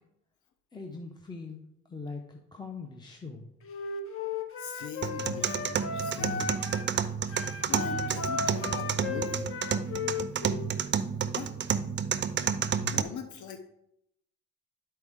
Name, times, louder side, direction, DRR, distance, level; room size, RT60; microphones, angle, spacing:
voice 1, 0.7-1.6 1.9-3.5, left 4 dB, 15° left, 2 dB, 0.8 m, -41 dB
Wind instrument woodwind instrument, 3.6-6.9 7.3-10.7, left 5 dB, 45° left, 1.0 m, -35 dB
voice 2, 4.6-6.6 7.7-9.5 11.3-11.5 12.8-13.6, left 6 dB, 75° left, 6 dB, 0.8 m, -41 dB
sound 1, 5.0-13.0, right 7 dB, 40° right, 0.5 m, -30 dB
11.0 x 4.4 x 3.6 m, 0.79 s
cardioid pair, 90°, 30 cm